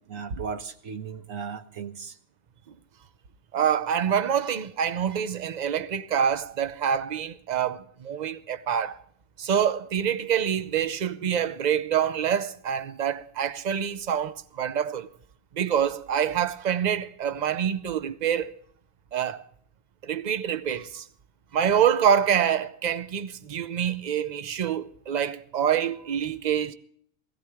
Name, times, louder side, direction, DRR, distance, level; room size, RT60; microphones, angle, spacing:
voice 1, 0.1-2.2, right 6 dB, 75° right, 1.5 m, -36 dB
voice 2, 3.5-9.0 9.4-15.1 15.5-18.5 19.1-19.4 20.0-21.1 21.5-26.7, right 8 dB, 45° right, 0.6 m, -26 dB
17.5 x 16.0 x 3.5 m
omnidirectional pair, 1.4 m